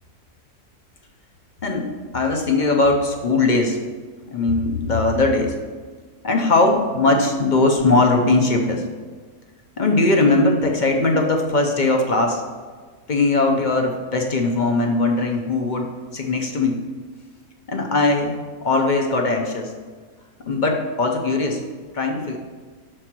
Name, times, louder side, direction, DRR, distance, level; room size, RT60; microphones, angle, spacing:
voice 1, 1.6-3.8 4.3-5.5 6.2-8.8 9.8-12.4 13.1-16.8 17.7-18.3 18.6-19.7 20.5-21.6 21.9-22.4, left 2 dB, 50° left, 2 dB, 0.6 m, -20 dB
6.4 x 4.4 x 5.9 m, 1.5 s
omnidirectional pair, 1.7 m